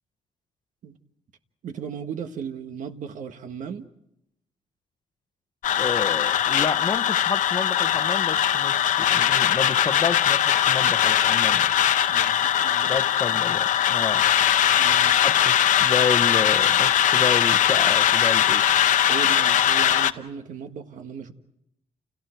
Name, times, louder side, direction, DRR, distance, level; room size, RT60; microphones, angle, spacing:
voice 1, 1.6-3.9 12.1-13.0 14.7-15.2 19.1-21.3, right 7 dB, 70° right, 1.6 m, -36 dB
sound 1, 5.6-20.1, left 10 dB, 70° left, 0.9 m, -20 dB
voice 2, 5.8-11.7 12.8-14.3 15.2-18.6, left 5 dB, 30° left, 0.9 m, -30 dB
30.0 x 29.5 x 4.6 m
cardioid pair, 150°, 14 cm